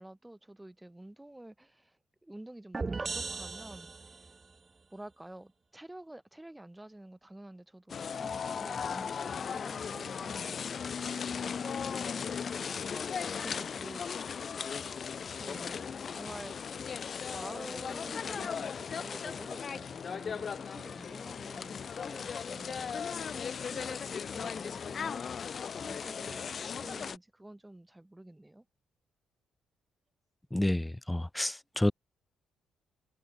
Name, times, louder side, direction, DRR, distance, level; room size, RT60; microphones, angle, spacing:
voice 1, 0.0-3.9 4.2-4.3 4.9-12.9 13.4-14.0 15.4-16.9 17.3-23.0 23.3-25.2 25.8-28.7, right 1 dB, 10° right, 5.4 m, -49 dB
sound 1, 2.7-4.4, right 3 dB, 25° right, 3.2 m, -37 dB
sound 2, 7.9-27.2, left 6 dB, 45° left, 2.1 m, -37 dB
voice 2, 30.5-31.9, left 1 dB, 10° left, 0.4 m, -29 dB
cardioid pair, 90°, 0 cm